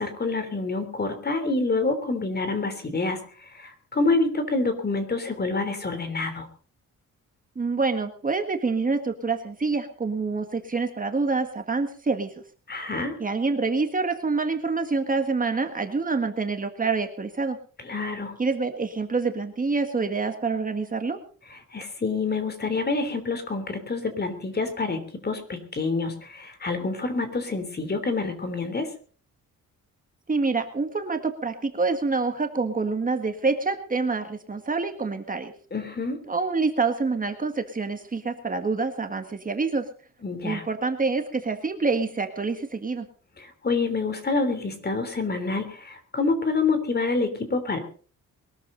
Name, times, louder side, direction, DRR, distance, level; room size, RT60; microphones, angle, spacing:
voice 1, 0.0-6.5 12.7-13.2 17.8-18.4 21.5-28.9 35.7-36.2 40.2-40.6 43.4-47.8, left 3 dB, 30° left, 9 dB, 3.4 m, -27 dB
voice 2, 7.6-12.3 13.2-17.6 18.4-21.2 30.3-35.5 36.3-39.8 40.4-43.1, right 4 dB, 25° right, 6 dB, 1.7 m, -26 dB
22.0 x 13.5 x 3.9 m, 0.41 s
cardioid pair, 130°, 32 cm